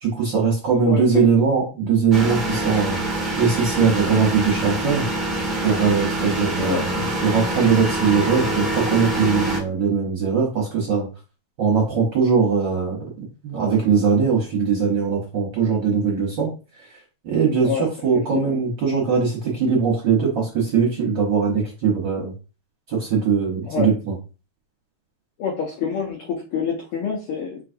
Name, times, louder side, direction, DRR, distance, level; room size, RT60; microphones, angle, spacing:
voice 1, 0.0-3.0 3.4-5.1 5.6-11.1 11.6-13.0 13.4-16.5 17.2-22.3 22.9-24.1, right 5 dB, 55° right, -2 dB, 1.3 m, -20 dB
sound 1, 2.1-9.6, right 1 dB, ahead, 0.4 m, -25 dB
voice 2, 25.4-27.6, left 6 dB, 70° left, -2 dB, 1.4 m, -26 dB
5.0 x 3.9 x 2.6 m, 0.33 s
omnidirectional pair, 3.4 m